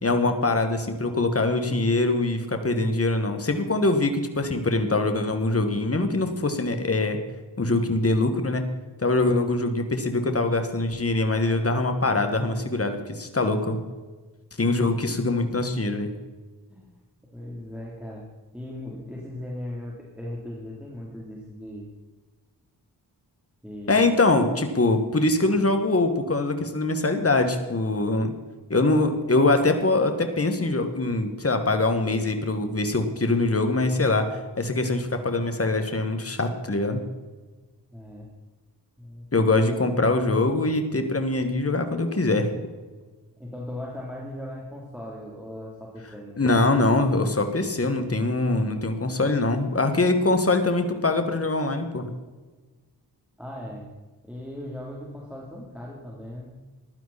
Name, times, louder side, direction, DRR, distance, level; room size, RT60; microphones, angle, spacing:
voice 1, 0.0-7.2 7.6-8.6 9.0-13.8 14.6-16.1 23.9-28.3 28.7-37.0 39.3-42.5 46.4-52.1, left 2 dB, 35° left, 6 dB, 2.0 m, -23 dB
voice 2, 17.3-18.3 18.5-21.9 23.6-24.2 37.9-38.3 39.0-39.9 43.4-46.4 53.4-53.9 54.2-56.6, left 1 dB, 5° right, -4 dB, 3.5 m, -38 dB
15.5 x 11.5 x 4.3 m, 1.3 s
cardioid pair, 40°, 40 cm